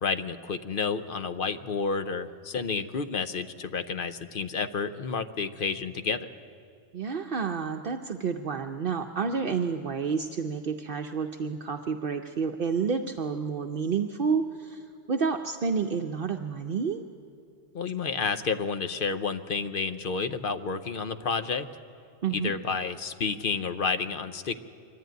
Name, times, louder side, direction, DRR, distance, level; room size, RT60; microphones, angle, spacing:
voice 1, 0.0-6.3 17.7-21.7 22.3-24.6, left 5 dB, 60° left, 10 dB, 0.9 m, -30 dB
voice 2, 6.9-14.8 15.1-17.0 22.2-22.5, right 5 dB, 60° right, 5 dB, 0.9 m, -29 dB
23.5 x 13.5 x 9.2 m, 2.4 s
omnidirectional pair, 1.1 m